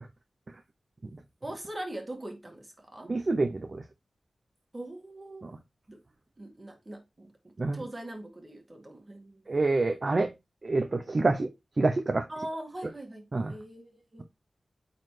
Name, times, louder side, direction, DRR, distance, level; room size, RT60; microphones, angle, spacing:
voice 1, 1.4-3.1 4.7-5.4 5.9-6.0 6.4-7.3 7.7-9.4 12.3-14.2, right 1 dB, 25° right, 2.0 m, -41 dB
voice 2, 3.1-3.8 5.4-5.5 7.6-7.8 9.5-10.3 10.6-11.5 11.8-12.3 13.3-13.5, right 3 dB, 40° right, 0.7 m, -27 dB
8.7 x 4.1 x 3.3 m
wide cardioid pair, 110°, 0 cm